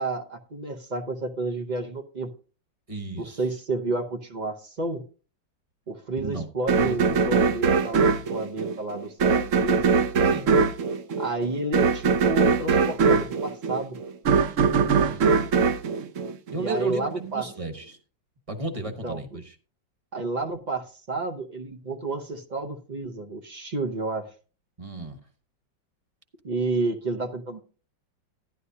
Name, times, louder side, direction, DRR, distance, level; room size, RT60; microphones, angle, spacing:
voice 1, 0.0-2.3 3.1-5.0 5.9-8.0 8.3-9.9 11.2-14.0 16.5-17.4 18.8-19.2 20.1-24.3 26.4-27.6, right 2 dB, 85° right, 5 dB, 0.4 m, -30 dB
voice 2, 2.9-3.4 6.2-6.5 6.8-7.2 10.2-10.5 14.7-15.4 16.5-18.0 18.5-19.5 24.8-25.2, right 3 dB, 25° right, 6 dB, 0.9 m, -34 dB
sound 1, 6.7-16.9, right 5 dB, 65° right, 0.8 m, -22 dB
12.0 x 11.0 x 2.8 m, 0.38 s
omnidirectional pair, 2.1 m